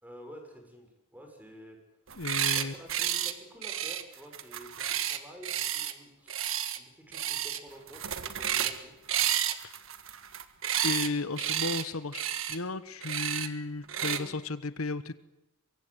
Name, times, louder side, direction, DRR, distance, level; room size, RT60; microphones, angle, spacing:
voice 1, 0.0-1.8 2.5-6.3 6.8-8.9 14.0-14.3, equal, 10° right, 3 dB, 6.3 m, -49 dB
voice 2, 2.1-2.7 9.6-9.7 10.8-12.2 12.5-15.2, left 3 dB, 90° left, 14 dB, 1.2 m, -34 dB
sound 1, 2.1-2.6 2.9-3.3 3.6-5.9 6.3-6.8 7.1-7.6 7.9-8.8 9.1-11.1 11.4-11.8 12.1-12.6 13.0-13.5 13.9-14.2, right 10 dB, 65° right, 1.6 m, -31 dB
23.5 x 23.5 x 8.1 m, 0.90 s
head